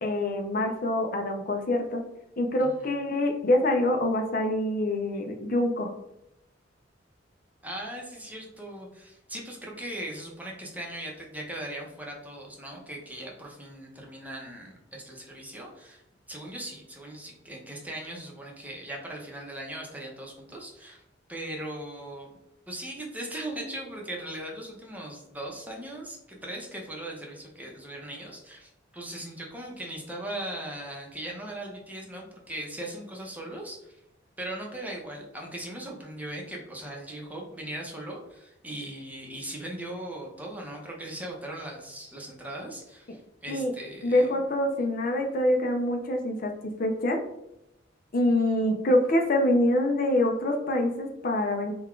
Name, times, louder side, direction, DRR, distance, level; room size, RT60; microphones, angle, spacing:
voice 1, 0.0-2.0 2.4-5.9 43.5-43.7 44.0-46.5 46.8-47.2 48.1-51.7, left 1 dB, 50° left, 3 dB, 0.5 m, -25 dB
voice 2, 2.6-2.9 7.6-16.0 16.3-21.0 21.3-22.3 22.7-34.0 34.4-44.3, right 1 dB, 10° right, -1 dB, 0.8 m, -39 dB
3.9 x 2.3 x 4.4 m, 0.86 s
head